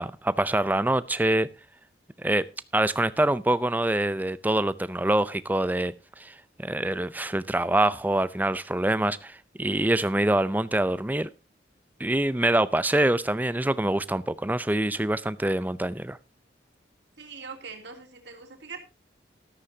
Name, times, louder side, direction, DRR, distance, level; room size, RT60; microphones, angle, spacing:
voice 1, 0.0-1.5 2.2-2.5 2.7-6.3 6.6-11.3 12.0-16.2, right 1 dB, 10° right, 0.5 m, -25 dB
voice 2, 17.2-18.8, right 5 dB, 70° right, 2.9 m, -42 dB
13.5 x 13.5 x 2.7 m
head